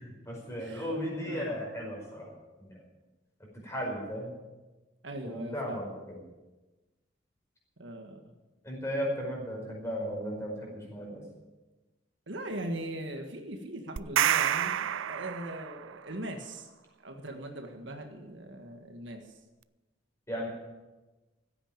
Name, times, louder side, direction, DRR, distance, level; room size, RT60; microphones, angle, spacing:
voice 1, 0.0-2.3 2.6-2.8 3.6-4.3 5.2-6.2 8.6-11.2 20.3-20.5, equal, 15° left, -2 dB, 5.2 m, -35 dB
voice 2, 1.3-1.6 5.0-5.8 7.8-8.3 12.3-16.7 17.0-19.2, right 1 dB, 70° right, 4 dB, 1.7 m, -40 dB
sound 1, 14.0-15.9, right 10 dB, 90° right, 0.4 m, -28 dB
15.5 x 8.9 x 9.0 m, 1.1 s
head